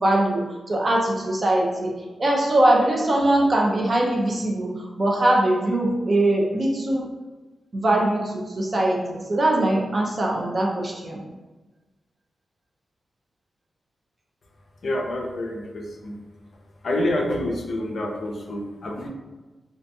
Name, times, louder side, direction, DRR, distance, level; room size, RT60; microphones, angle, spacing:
voice 1, 0.0-1.9 2.2-7.1 7.7-11.2, right 1 dB, 35° right, -1 dB, 0.5 m, -21 dB
voice 2, 14.8-16.2 16.8-19.1, left 1 dB, 60° left, 0 dB, 0.4 m, -27 dB
2.6 x 2.5 x 2.2 m, 1.2 s
wide cardioid pair, 120°, 0 cm